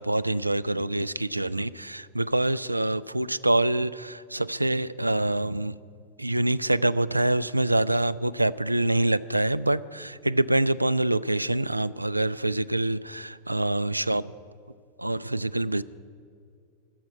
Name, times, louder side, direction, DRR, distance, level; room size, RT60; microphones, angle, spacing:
voice 1, 0.0-5.8 6.2-14.3 15.0-15.8, right 1 dB, 85° right, 16 dB, 0.3 m, -25 dB
13.5 x 7.5 x 9.3 m, 2.4 s
figure-of-eight pair, 90°, 0 cm